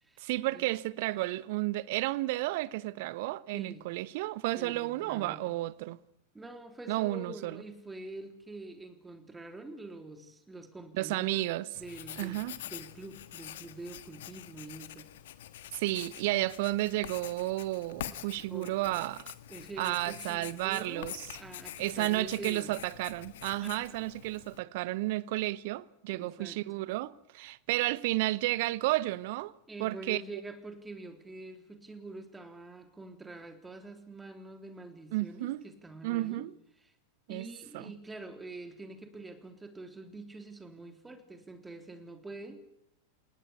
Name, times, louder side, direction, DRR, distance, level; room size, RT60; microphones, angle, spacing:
voice 1, 0.2-6.0 6.9-7.6 10.9-11.7 12.2-12.6 15.7-19.3 19.8-21.3 21.8-29.5 29.8-30.2 35.1-35.6 36.0-36.5 37.3-37.5 37.7-37.9, right 18 dB, 50° right, 0.9 m, -32 dB
voice 2, 4.5-5.4 6.3-15.1 18.4-19.0 19.5-22.7 23.8-24.0 26.1-26.6 29.7-36.5 37.3-42.7, right 2 dB, 10° right, 3.5 m, -46 dB
Writing, 11.7-24.6, left 12 dB, 55° left, 1.5 m, -46 dB
28.0 x 19.5 x 8.5 m
figure-of-eight pair, 90°, 0 cm